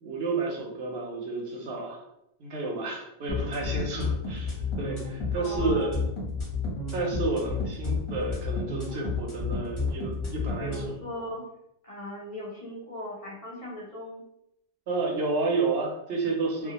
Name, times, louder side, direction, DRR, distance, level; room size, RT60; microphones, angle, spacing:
voice 1, 0.0-2.0 2.4-6.0 6.9-10.7 14.9-16.7, right 3 dB, 65° right, 0 dB, 0.7 m, -30 dB
voice 2, 3.2-3.6 5.3-6.0 10.6-11.4 11.8-14.2 16.6-16.7, left 1 dB, 65° left, -5 dB, 0.3 m, -38 dB
sound 1, 3.3-10.9, left 4 dB, 30° left, 0.7 m, -30 dB
2.3 x 2.0 x 2.8 m, 0.80 s
omnidirectional pair, 1.2 m